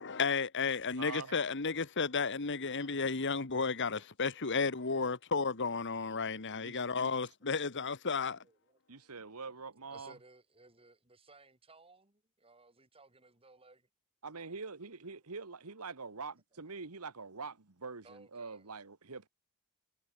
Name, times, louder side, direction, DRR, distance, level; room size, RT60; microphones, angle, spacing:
voice 1, 0.0-8.4, left 4 dB, 55° left, 1.5 m, -33 dB
voice 2, 1.0-1.3 6.6-7.1 8.9-10.1 14.2-19.3, right 4 dB, 85° right, 1.6 m, -45 dB
voice 3, 4.0-4.4 8.4-8.8 9.9-13.9 18.0-18.7, right 3 dB, 25° right, 7.7 m, -60 dB
head